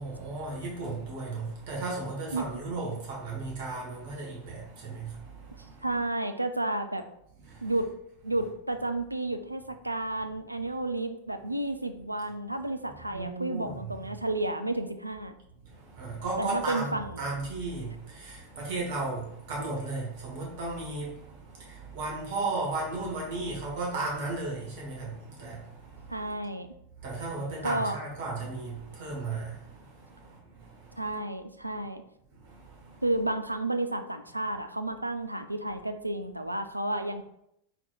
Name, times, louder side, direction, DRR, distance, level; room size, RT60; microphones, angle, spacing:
voice 1, 0.0-5.9 7.4-7.7 12.8-14.1 15.5-26.3 26.9-31.1 32.3-33.0, right 3 dB, 50° right, -3 dB, 1.3 m, -35 dB
voice 2, 5.8-7.0 7.6-7.9 8.2-15.4 16.4-17.2 26.1-26.7 27.6-28.0 31.0-32.0 33.0-37.2, right 2 dB, 85° right, 8 dB, 0.3 m, -31 dB
4.1 x 4.1 x 2.4 m, 0.75 s
figure-of-eight pair, 90°, 0 cm